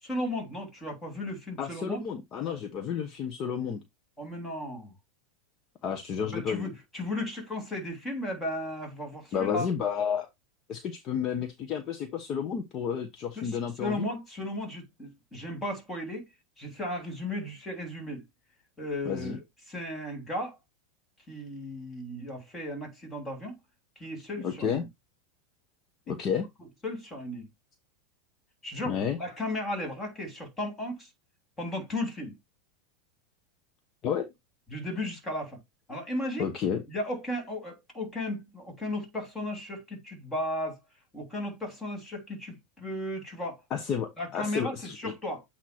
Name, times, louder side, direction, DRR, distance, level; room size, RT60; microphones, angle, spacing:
voice 1, 0.0-2.0 4.2-4.9 6.2-9.7 13.3-16.3 16.6-18.2 18.8-20.6 21.3-23.6 24.0-24.8 26.8-27.5 28.6-31.1 31.6-32.3 34.7-35.6 35.9-36.5 36.9-40.8 41.1-43.6 44.2-45.4, left 1 dB, 15° left, 3.1 m, -35 dB
voice 2, 1.6-3.8 5.8-6.7 9.3-10.3 10.7-14.0 19.0-19.4 24.4-24.9 26.1-26.5 28.8-29.2 34.0-34.3 36.4-36.8 43.7-45.1, left 7 dB, 35° left, 1.0 m, -31 dB
8.3 x 2.9 x 4.5 m
supercardioid pair, 145°, 0 cm